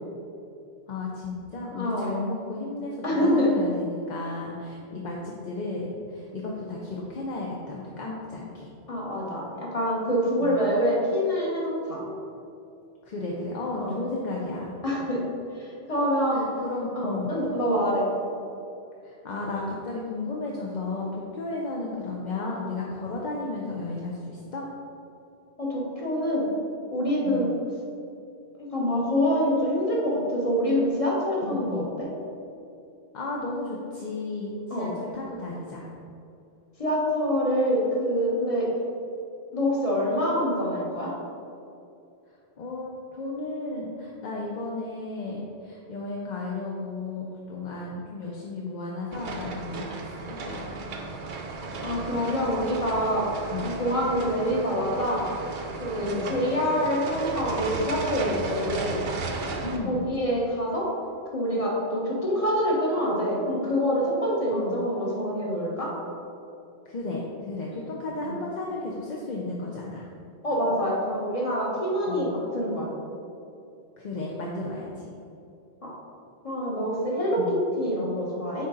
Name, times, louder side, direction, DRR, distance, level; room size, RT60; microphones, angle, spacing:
voice 1, 0.9-8.7 10.4-10.7 13.0-14.7 16.3-17.5 19.0-24.7 27.2-27.5 31.4-31.9 33.1-35.9 42.6-50.7 53.5-53.8 56.0-56.4 59.6-60.1 64.5-64.8 66.9-70.0 72.1-72.3 74.0-75.1 77.4-77.5, left 3 dB, 50° left, -3 dB, 0.7 m, -34 dB
voice 2, 1.7-2.1 3.0-3.5 8.9-12.0 13.7-14.0 14.8-15.2 15.6-16.5 16.9-18.1 25.6-26.5 26.9-27.5 28.6-32.1 34.7-34.9 36.8-38.7 39.5-41.1 51.8-53.3 53.6-55.2 55.8-59.0 59.8-60.9 61.3-65.9 68.2-68.4 70.4-72.9 75.8-75.9 76.4-78.7, equal, 35° left, -4 dB, 1.3 m, -26 dB
sound 1, 49.1-59.8, right 3 dB, 55° right, 0.7 m, -34 dB
6.5 x 4.1 x 3.8 m, 2.6 s
omnidirectional pair, 1.1 m